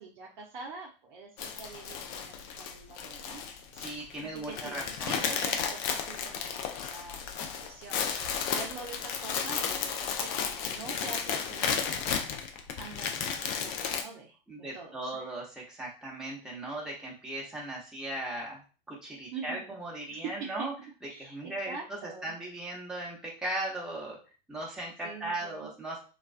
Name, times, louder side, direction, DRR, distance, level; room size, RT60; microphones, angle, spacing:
voice 1, 0.0-3.4 4.2-12.0 12.8-15.3 19.3-19.7 20.1-20.5 21.1-22.3 25.0-25.7, right 4 dB, 50° right, -1 dB, 0.6 m, -45 dB
sound 1, 1.4-14.0, left 7 dB, 35° left, 0.4 m, -33 dB
voice 2, 3.7-5.3 14.5-18.6 18.9-20.7 21.2-24.2 24.5-26.0, right 1 dB, ahead, -4 dB, 0.7 m, -38 dB
2.3 x 2.3 x 2.4 m, 0.35 s
hypercardioid pair, 105°, 30 cm